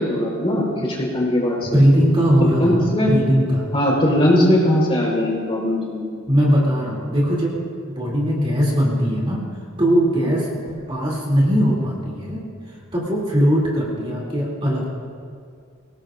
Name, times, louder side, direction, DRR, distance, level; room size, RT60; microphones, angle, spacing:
voice 1, 0.0-1.8 2.6-3.1 3.7-6.0 10.2-10.4, left 1 dB, 25° left, -3 dB, 4.2 m, -20 dB
voice 2, 1.7-3.7 6.3-7.6 7.9-9.4 9.8-12.4 12.9-14.9, equal, 25° right, -4 dB, 2.8 m, -19 dB
24.0 x 18.5 x 2.5 m, 2.2 s
head